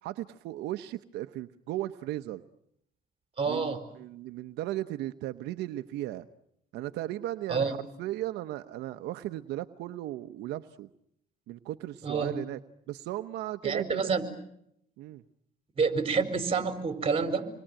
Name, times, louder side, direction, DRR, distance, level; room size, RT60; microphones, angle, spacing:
voice 1, 0.0-2.4 3.4-6.3 6.7-10.9 11.5-12.6 12.9-14.1 15.0-15.2, right 14 dB, 85° right, 9 dB, 1.0 m, -36 dB
voice 2, 3.4-3.8 7.5-7.7 12.0-12.3 13.6-14.2 15.8-17.5, right 5 dB, 35° right, 9 dB, 4.5 m, -28 dB
28.0 x 21.5 x 8.9 m, 0.75 s
cardioid pair, 110°, 17 cm